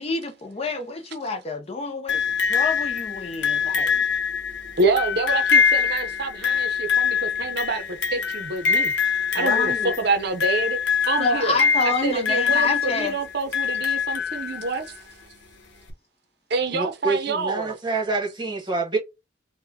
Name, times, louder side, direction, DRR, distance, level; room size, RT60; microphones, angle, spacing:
voice 1, 0.0-4.0 9.4-9.9 11.2-13.1, left 3 dB, 30° left, 0.5 m, -28 dB
sound 1, 2.1-14.9 15.9-16.0, left 6 dB, 65° left, 0.8 m, -24 dB
voice 2, 4.8-8.9 9.3-10.8 11.0-11.6 11.8-15.1 16.5-17.8, right 3 dB, 55° right, 0.6 m, -27 dB
voice 3, 16.7-19.0, right 3 dB, 25° right, 1.1 m, -26 dB
4.0 x 2.1 x 2.7 m
head